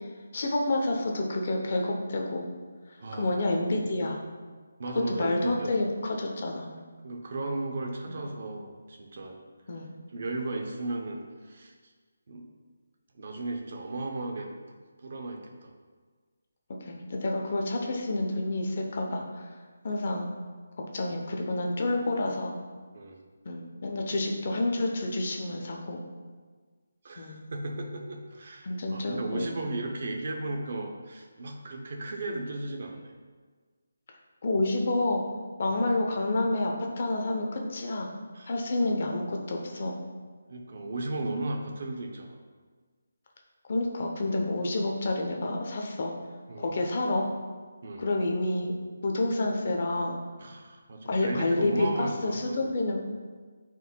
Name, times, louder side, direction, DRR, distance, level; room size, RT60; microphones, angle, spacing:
voice 1, 0.3-2.5 3.2-4.2 5.1-6.7 8.1-8.2 9.7-9.9 16.8-19.5 19.8-20.3 20.8-22.5 23.4-26.0 27.2-27.4 28.6-29.6 34.4-35.2 35.6-38.1 38.5-40.0 43.7-46.1 46.6-47.2 48.0-48.7 49.0-50.2 51.1-53.0, left 2 dB, 35° left, 1 dB, 0.7 m, -29 dB
voice 2, 3.0-3.3 4.8-5.9 7.0-9.4 10.1-11.7 12.3-12.5 13.1-15.7 21.0-21.1 22.9-23.2 27.0-33.1 35.7-35.9 38.3-38.5 40.5-42.4 46.5-46.7 47.8-48.0 50.4-52.8, right 2 dB, 40° right, 3 dB, 0.7 m, -36 dB
10.5 x 4.6 x 2.3 m, 1.5 s
hypercardioid pair, 175°, 0 cm